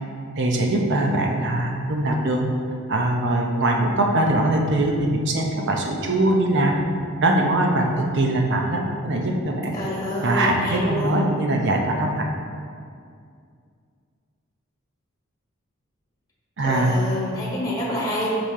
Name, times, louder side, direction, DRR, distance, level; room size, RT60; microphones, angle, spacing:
voice 1, 0.4-2.5 2.9-6.7 7.2-9.8 10.2-12.3 16.6-17.0, right 1 dB, 55° right, 1 dB, 0.7 m, -22 dB
voice 2, 9.7-11.2 16.6-18.3, left 1 dB, 15° left, -5 dB, 1.3 m, -27 dB
5.8 x 5.1 x 3.7 m, 2.3 s
head